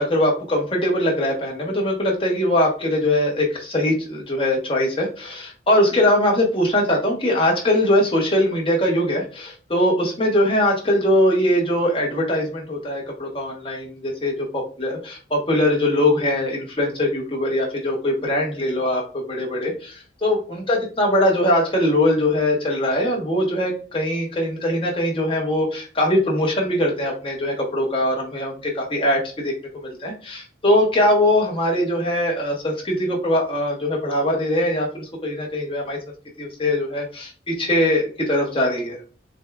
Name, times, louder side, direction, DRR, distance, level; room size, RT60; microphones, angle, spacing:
voice 1, 0.0-14.3 14.8-19.0 19.3-36.0 36.4-39.0, left 1 dB, 30° left, -1 dB, 1.0 m, -21 dB
6.4 x 2.3 x 2.3 m, 0.39 s
head